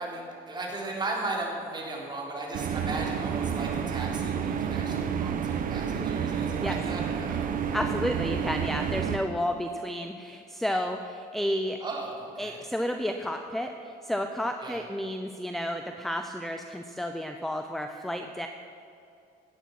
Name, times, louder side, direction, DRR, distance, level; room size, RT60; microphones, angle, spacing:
voice 1, 0.0-7.5 11.8-12.6 14.6-14.8, right 2 dB, 25° right, -2 dB, 3.9 m, -36 dB
sound 1, 2.5-9.2, right 7 dB, 55° right, 1.1 m, -30 dB
voice 2, 7.7-11.8 12.4-18.5, equal, ahead, 6 dB, 0.8 m, -31 dB
16.5 x 11.0 x 6.1 m, 2.6 s
cardioid pair, 110°, 17 cm